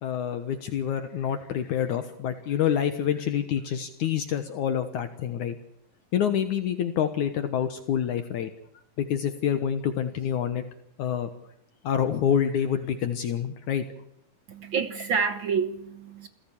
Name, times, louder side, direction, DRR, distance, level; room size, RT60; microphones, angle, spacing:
voice 1, 0.0-5.6 6.1-8.5 9.0-10.6 11.0-11.3 11.8-13.8, left 9 dB, 65° left, 2.5 m, -27 dB
voice 2, 14.5-16.3, right 6 dB, 60° right, 1.3 m, -28 dB
28.0 x 16.0 x 8.7 m
omnidirectional pair, 4.0 m